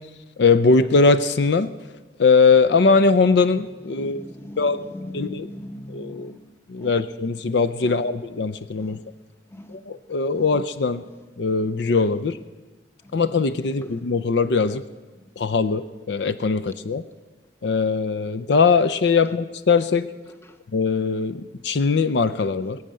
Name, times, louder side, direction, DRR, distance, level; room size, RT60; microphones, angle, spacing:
voice 1, 0.4-1.7 2.2-4.2 4.6-4.8 5.1-5.5 5.9-6.3 6.7-9.0 9.7-11.0 11.4-12.3 13.1-14.8 15.4-17.0 17.6-20.1 20.7-22.8, left 4 dB, 65° left, 0.5 m, -20 dB
voice 2, 3.9-6.4 6.8-7.0 7.8-8.1 8.8-9.0 9.5-9.8, left 1 dB, 15° left, 0.9 m, -39 dB
21.5 x 7.9 x 7.5 m
head